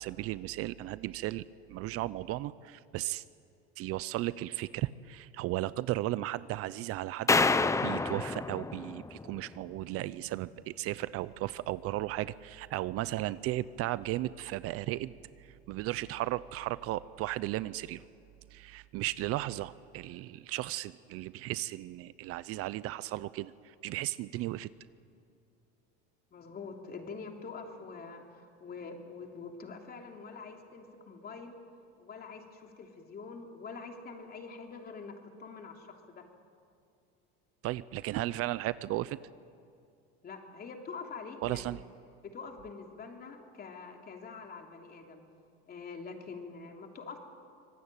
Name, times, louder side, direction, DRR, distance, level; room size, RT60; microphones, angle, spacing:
voice 1, 0.0-1.4 1.7-3.2 3.8-7.3 7.8-15.1 15.7-18.0 18.5-24.7 37.6-39.2 41.4-41.8, right 16 dB, 55° right, 17 dB, 0.6 m, -35 dB
sound 1, 7.3-9.6, left 3 dB, 10° left, 0.7 m, -28 dB
voice 2, 26.3-31.5 32.0-35.1 35.4-36.2 40.2-41.8 42.2-45.2 45.7-47.2, left 4 dB, 30° left, 3 dB, 3.2 m, -45 dB
25.0 x 19.5 x 9.0 m, 2.4 s
supercardioid pair, 120°, 29 cm